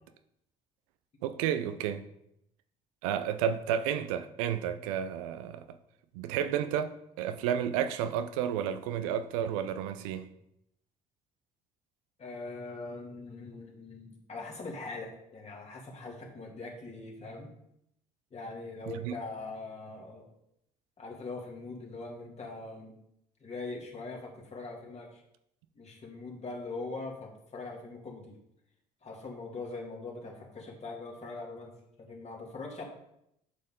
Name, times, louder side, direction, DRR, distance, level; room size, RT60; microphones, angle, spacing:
voice 1, 1.2-2.0 3.0-5.7 6.1-6.9 7.2-10.3 19.0-19.1, right 9 dB, 90° right, 0.5 m, -31 dB
voice 2, 12.2-17.5 18.3-20.3 21.0-22.9 23.4-25.2 25.8-28.4 29.0-31.7 32.0-32.8, left 3 dB, 40° left, 2.4 m, -42 dB
7.6 x 5.5 x 3.7 m
supercardioid pair, 65°, 17 cm